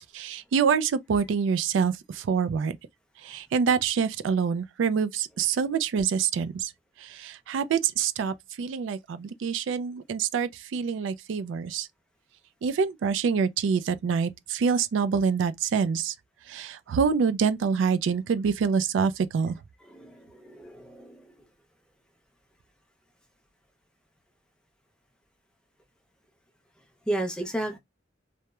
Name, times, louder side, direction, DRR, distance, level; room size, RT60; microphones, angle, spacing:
voice 1, 0.1-2.8 3.2-6.7 7.0-11.9 12.6-16.1 16.5-19.6, right 6 dB, 75° right, 0.3 m, -26 dB
voice 2, 19.8-21.3 27.1-27.8, right 1 dB, 5° left, 0.5 m, -33 dB
2.9 x 2.0 x 2.2 m
head